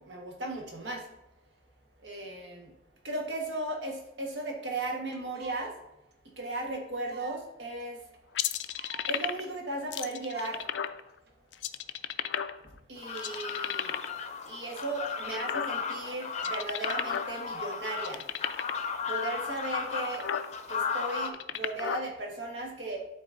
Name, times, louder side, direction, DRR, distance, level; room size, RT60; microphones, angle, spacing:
voice 1, 0.0-1.0 2.0-2.7 3.0-5.7 6.4-8.0 9.1-10.6 12.9-13.9 14.5-18.2 19.1-20.2 20.7-23.0, right 2 dB, 80° right, 0 dB, 1.4 m, -36 dB
sound 1, 4.5-4.6 4.8-4.9 5.1-5.8 6.1-6.2 6.4-6.5 7.0-7.5 7.8-7.9 8.1-8.2 8.4-9.1 9.4-9.5 9.7-10.0 10.3-10.6 11.3-11.5, right 4 dB, 65° right, 0.8 m, -49 dB
sound 2, 8.3-9.5 9.9-11.0 11.5-12.8 13.1-14.2 14.7-16.0 16.3-17.3 17.6-17.7 18.0-18.8 19.5-19.6 20.0-20.5 21.1-22.0, left 9 dB, 85° left, 0.4 m, -33 dB
sound 3, 13.0-21.3, left 5 dB, 40° left, 0.6 m, -35 dB
11.5 x 4.1 x 2.6 m, 0.91 s
head